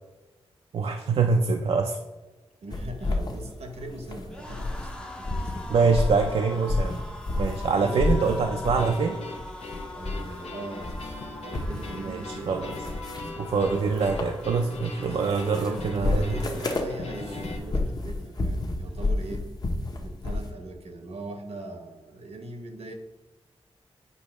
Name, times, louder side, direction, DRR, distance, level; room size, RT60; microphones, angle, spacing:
voice 1, 0.7-2.0 5.7-7.0 7.4-9.2 12.0-12.7 13.4-16.4, right 4 dB, 60° right, 4 dB, 0.4 m, -24 dB
voice 2, 2.6-5.7 6.6-7.0 7.7-8.7 9.9-11.0 11.4-13.4 14.9-19.5 20.0-22.9, right 2 dB, 80° right, 5 dB, 1.0 m, -40 dB
sound 1, 2.7-4.9 5.2-7.7 8.0-8.9 9.3-10.4 10.7-20.5, left 2 dB, 40° left, 0.8 m, -31 dB
sound 2, 2.9-18.1 18.4-18.6 18.9-19.7, left 2 dB, 10° left, 0.6 m, -43 dB
sound 3, 8.8-17.6, left 3 dB, 75° left, 0.9 m, -42 dB
8.3 x 2.8 x 5.9 m, 1.2 s
wide cardioid pair, 180°, 11 cm